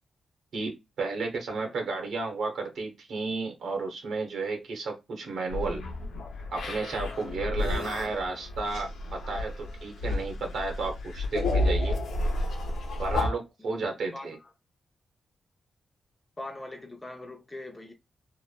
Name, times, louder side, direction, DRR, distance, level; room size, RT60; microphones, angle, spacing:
voice 1, 0.5-5.8 6.5-12.0 13.0-14.4, right 3 dB, 75° right, 0.9 m, -33 dB
sound 1, 5.5-13.3, left 2 dB, 85° left, 0.6 m, -31 dB
voice 2, 7.4-8.1 13.6-13.8 14.1-14.5 16.4-17.9, left 2 dB, 15° left, 0.5 m, -43 dB
2.9 x 2.1 x 2.3 m
wide cardioid pair, 150°, 0 cm